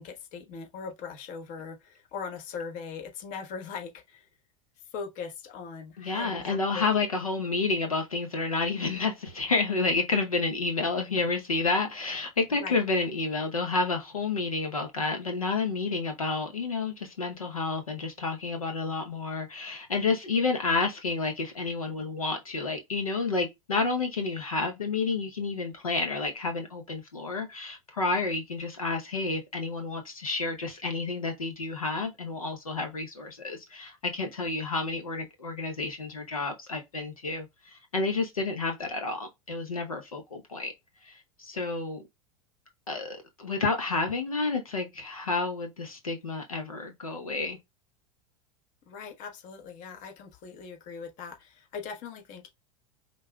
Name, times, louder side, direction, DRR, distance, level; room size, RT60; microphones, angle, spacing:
voice 1, 0.0-4.3 4.9-6.9 12.6-12.8 48.9-52.5, left 6 dB, 45° left, 1.2 m, -40 dB
voice 2, 6.0-40.7 41.0-42.0 42.9-47.6, left 3 dB, 90° left, 0.8 m, -30 dB
5.3 x 3.7 x 2.2 m
hypercardioid pair, 85°, 18 cm